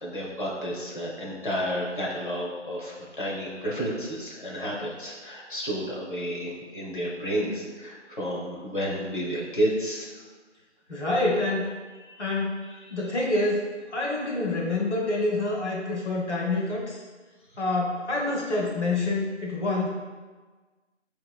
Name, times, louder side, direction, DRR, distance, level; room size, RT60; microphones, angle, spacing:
voice 1, 0.0-10.1 12.1-12.2 12.7-13.0, equal, 45° left, -4 dB, 0.6 m, -31 dB
voice 2, 10.9-11.8 12.2-17.0 17.6-19.9, left 2 dB, 70° left, -3 dB, 0.9 m, -27 dB
3.9 x 2.8 x 2.2 m, 1.4 s
figure-of-eight pair, 170°, 36 cm